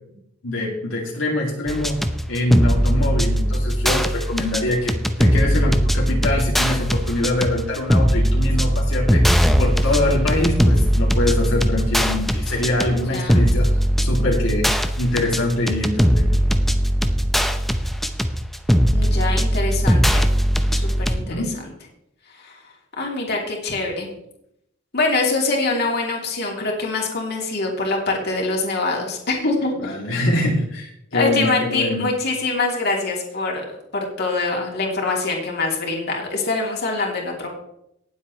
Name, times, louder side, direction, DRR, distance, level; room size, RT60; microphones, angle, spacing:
voice 1, 0.4-2.0 2.3-13.7 14.0-16.4 21.3-21.5 29.8-32.1, left 1 dB, 75° left, -3 dB, 2.5 m, -24 dB
sound 1, 1.7-21.2, equal, ahead, 0.7 m, -19 dB
voice 2, 12.8-13.5 18.9-20.2 20.7-21.5 22.4-22.6 23.0-24.1 24.9-29.7 31.1-37.5, left 3 dB, 55° left, -1 dB, 2.9 m, -24 dB
18.5 x 8.0 x 3.2 m, 0.79 s
head